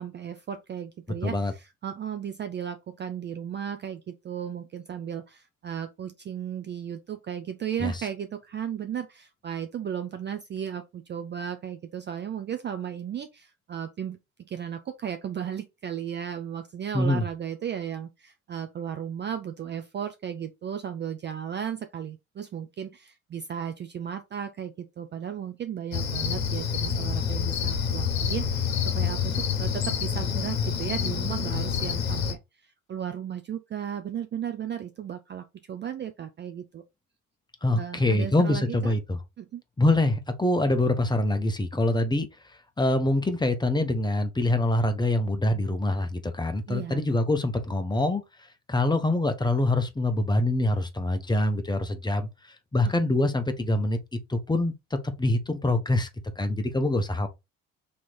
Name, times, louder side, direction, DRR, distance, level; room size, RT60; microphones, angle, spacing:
voice 1, 0.0-36.8 37.8-38.9 39.4-39.6 46.7-47.0 53.0-53.1, right 8 dB, 30° right, 0.5 m, -35 dB
voice 2, 1.2-1.5 7.8-7.9 16.9-17.3 37.6-39.2 39.8-42.3 42.8-48.2 48.7-52.3 52.7-56.1 56.4-57.3, left 2 dB, 10° left, 0.8 m, -25 dB
Cricket, 25.9-32.3, left 7 dB, 80° left, 0.9 m, -27 dB
3.1 x 3.0 x 4.1 m
hypercardioid pair, 60°, 40 cm